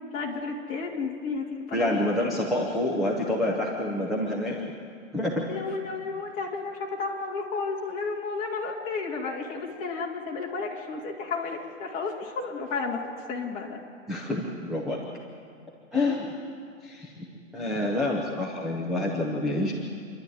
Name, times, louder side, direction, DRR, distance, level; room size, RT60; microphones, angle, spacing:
voice 1, 0.1-2.3 5.5-13.8 15.9-16.2 18.0-18.2, left 4 dB, 20° left, -4 dB, 3.0 m, -32 dB
voice 2, 1.7-4.7 5.1-5.4 14.1-15.0 15.9-16.3 16.8-17.3 17.5-19.7, left 1 dB, ahead, -4 dB, 0.8 m, -28 dB
28.0 x 12.5 x 9.4 m, 2.3 s
hypercardioid pair, 170°, 38 cm